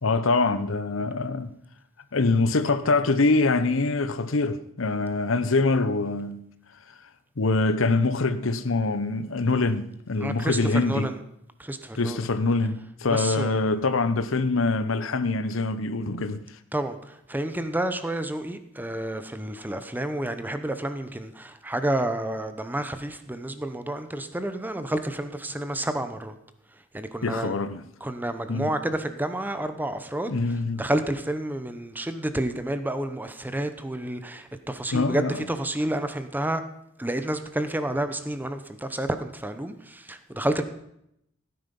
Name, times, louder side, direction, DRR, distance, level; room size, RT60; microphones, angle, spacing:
voice 1, 0.0-1.5 2.1-6.5 7.4-11.1 12.0-16.4 27.2-27.8 28.5-28.7 30.3-30.8 34.9-35.4, left 3 dB, 80° left, 0.8 m, -24 dB
voice 2, 10.2-11.2 11.6-12.3 13.1-13.8 16.7-26.4 26.9-27.5 28.0-36.6 37.0-40.6, right 1 dB, 10° right, 0.8 m, -30 dB
16.0 x 9.7 x 5.3 m
head